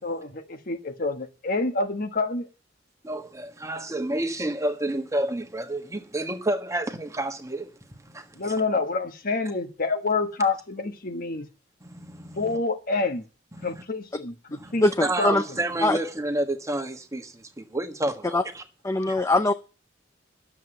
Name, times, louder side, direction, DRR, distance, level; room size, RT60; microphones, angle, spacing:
voice 1, 0.0-2.5 8.4-11.5 12.4-13.2 13.6-14.8 15.2-15.3, left 3 dB, 50° left, 1.4 m, -27 dB
voice 2, 3.0-7.7 8.0-8.5 11.8-12.4 13.6-13.8 14.6-14.7 15.0-18.6 19.1-19.2, right 1 dB, 15° right, 1.4 m, -30 dB
voice 3, 14.8-15.4 15.8-16.0 18.3-18.4 18.8-19.5, left 2 dB, 15° left, 0.6 m, -21 dB
12.0 x 7.6 x 7.8 m
head